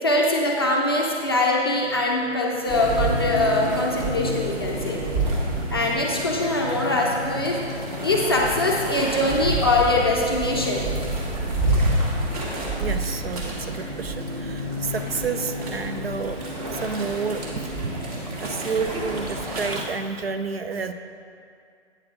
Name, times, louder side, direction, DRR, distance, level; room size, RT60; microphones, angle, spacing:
voice 1, 0.0-5.0 5.7-10.8, left 2 dB, 20° left, -3 dB, 0.5 m, -23 dB
sound 1, 2.7-19.8, right 1 dB, 35° right, 1.5 m, -28 dB
voice 2, 12.8-20.9, right 5 dB, 55° right, 9 dB, 0.5 m, -30 dB
8.8 x 4.1 x 6.2 m, 2.3 s
figure-of-eight pair, 145°, 36 cm